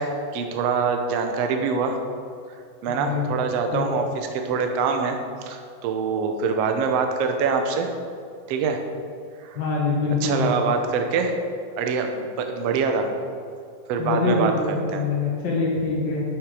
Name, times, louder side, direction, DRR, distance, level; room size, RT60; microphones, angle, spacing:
voice 1, 0.0-2.0 2.8-7.9 8.5-8.8 9.4-9.6 10.2-11.3 11.8-13.1 13.9-14.5 14.9-15.0, right 5 dB, 75° right, 5 dB, 1.5 m, -24 dB
voice 2, 2.9-3.4 3.7-4.0 9.5-10.5 14.0-16.2, left 4 dB, 60° left, -5 dB, 1.2 m, -24 dB
11.5 x 6.5 x 4.9 m, 2.4 s
omnidirectional pair, 4.0 m